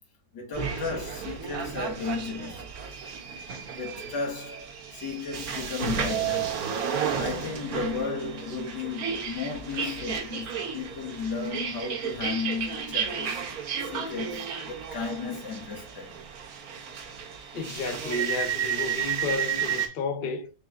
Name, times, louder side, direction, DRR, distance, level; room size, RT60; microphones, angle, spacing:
voice 1, 0.3-2.7 3.7-6.6 7.2-13.5 13.8-16.2, left 5 dB, 90° left, 2.2 m, -34 dB
sound 1, 0.5-19.9, right 7 dB, 65° right, 1.2 m, -33 dB
voice 2, 17.5-20.5, left 3 dB, 50° left, 0.7 m, -32 dB
5.1 x 2.2 x 3.5 m
omnidirectional pair, 1.8 m